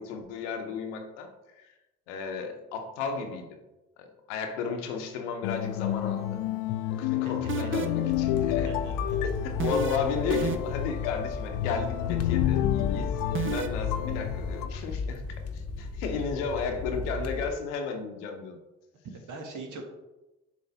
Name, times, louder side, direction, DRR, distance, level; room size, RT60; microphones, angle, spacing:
voice 1, 0.0-1.7 2.1-3.6 4.0-6.3 6.9-8.7 9.4-15.2 15.5-18.6, left 5 dB, 85° left, 4 dB, 0.9 m, -34 dB
sound 1, 5.4-14.7, left 12 dB, 70° left, 0.5 m, -30 dB
sound 2, 7.5-8.1 9.6-10.0 10.3-10.8 13.4-13.7, right 9 dB, 35° right, 0.7 m, -30 dB
sound 3, 8.1-17.5, left 3 dB, 45° left, 0.9 m, -36 dB
voice 2, 8.6-9.2 19.1-19.8, right 3 dB, 60° right, 2 dB, 1.5 m, -42 dB
7.2 x 3.3 x 4.0 m, 1.0 s
hypercardioid pair, 55°, 35 cm